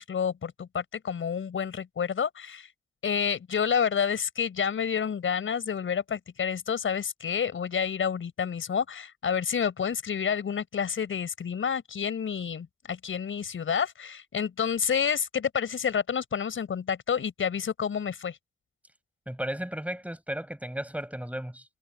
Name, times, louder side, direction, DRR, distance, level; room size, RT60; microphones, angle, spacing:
voice 1, 0.0-2.7 3.0-18.4, left 7 dB, 80° left, 5.5 m, -29 dB
voice 2, 19.3-21.6, equal, 5° right, 5.6 m, -34 dB
cardioid pair, 40°, 20 cm